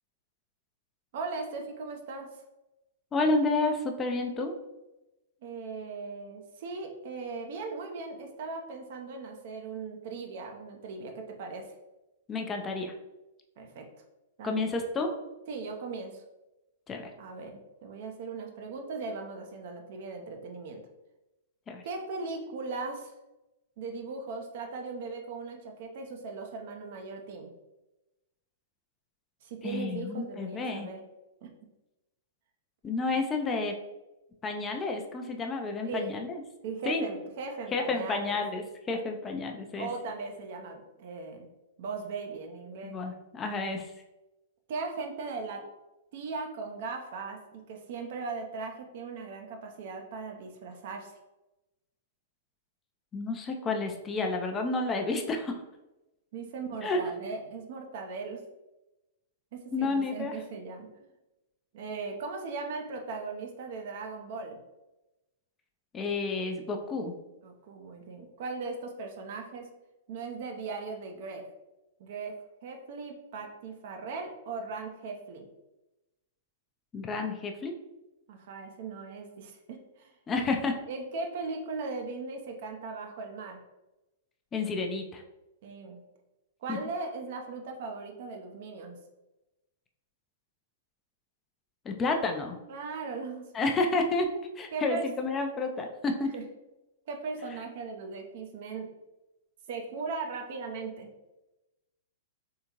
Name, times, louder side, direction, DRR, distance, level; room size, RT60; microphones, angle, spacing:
voice 1, 1.1-2.3 5.4-11.7 13.6-13.9 14.4-14.7 15.5-16.2 17.2-20.8 21.8-23.1 23.8-27.5 29.4-31.0 31.4-31.5 35.8-36.2 36.6-38.4 39.8-41.5 41.8-43.0 44.7-45.7 46.1-51.1 56.3-58.4 59.5-60.9 61.7-64.6 67.4-69.7 70.1-71.4 72.0-72.3 72.6-75.5 78.3-80.1 80.9-83.6 85.6-86.0 86.6-89.0 92.7-93.7 94.7-95.1 96.3-96.4 97.1-98.9 99.7-101.1, right 4 dB, 55° right, 3 dB, 0.7 m, -38 dB
voice 2, 3.1-4.5 12.3-12.9 14.4-15.1 16.9-17.1 21.7-21.8 29.6-30.9 32.8-33.7 34.4-36.4 36.9-37.0 37.7-39.9 42.8-43.9 53.1-55.6 56.8-57.0 59.7-60.4 65.9-67.1 76.9-77.7 80.3-80.7 84.5-85.2 86.7-86.8 91.9-92.6 93.5-94.3 94.6-96.3, left 3 dB, 20° left, 4 dB, 0.5 m, -30 dB
3.7 x 3.4 x 2.9 m, 0.99 s
figure-of-eight pair, 105°, 0 cm